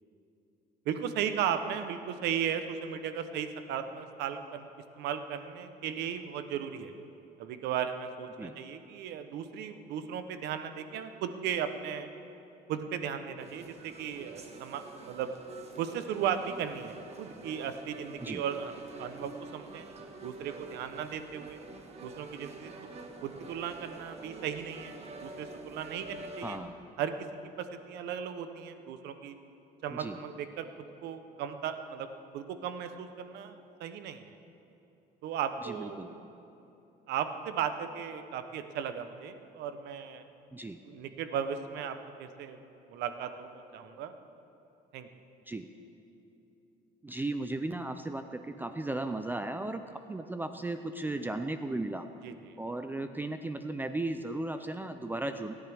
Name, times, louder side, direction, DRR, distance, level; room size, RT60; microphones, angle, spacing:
voice 1, 0.9-4.7 5.0-6.9 7.4-12.1 12.7-15.3 15.8-19.8 20.2-21.6 22.0-22.7 23.2-24.9 25.2-26.6 27.0-27.1 27.6-29.3 29.8-30.7 31.0-32.1 32.3-33.5 33.8-34.4 35.2-36.2 37.1-40.2 40.9-42.6 42.9-44.1 44.9-45.1 52.2-52.6, right 8 dB, 80° right, 9 dB, 0.9 m, -36 dB
sound 1, 13.4-26.6, right 2 dB, 40° right, 1.5 m, -47 dB
voice 2, 26.4-26.8 29.9-30.2 35.6-36.1 40.5-40.8 45.5-45.7 47.0-52.1 52.6-55.5, right 2 dB, 10° right, 8 dB, 0.5 m, -36 dB
23.5 x 10.5 x 3.5 m, 2.9 s
cardioid pair, 110°, 17 cm